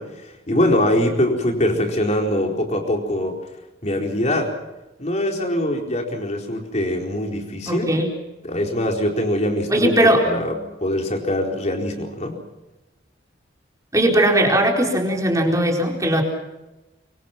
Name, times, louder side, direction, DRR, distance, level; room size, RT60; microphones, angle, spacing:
voice 1, 0.0-3.4 3.8-4.5 5.0-7.9 8.4-12.4, left 1 dB, 40° left, 2 dB, 4.3 m, -23 dB
voice 2, 7.7-8.1 9.7-10.2 13.9-16.2, right 1 dB, 20° right, 1 dB, 4.5 m, -18 dB
25.0 x 24.5 x 6.0 m, 1.0 s
head